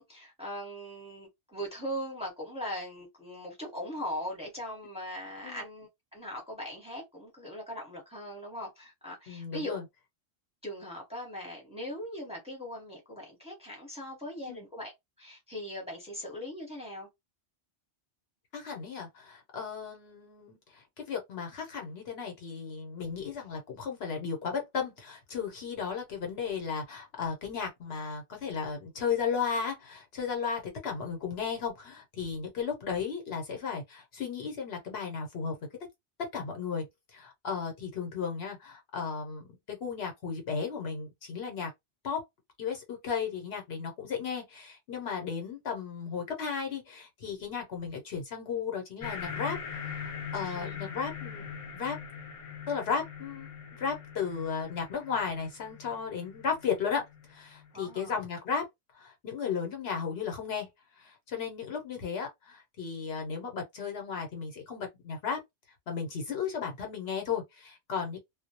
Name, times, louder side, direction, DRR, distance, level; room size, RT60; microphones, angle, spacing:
voice 1, 0.0-9.8 10.6-14.9 15.2-17.1 50.4-50.7 57.7-58.2, equal, 5° right, 0.9 m, -40 dB
voice 2, 9.3-9.8 14.5-14.6 18.5-35.6 36.3-36.8 37.1-41.7 42.0-42.2 42.6-52.0 52.7-58.7 58.9-60.7 61.0-65.4 65.9-68.2, left 6 dB, 70° left, 1.0 m, -35 dB
sound 1, 49.0-57.9, left 6 dB, 50° left, 0.4 m, -42 dB
2.2 x 2.0 x 2.8 m
omnidirectional pair, 1.2 m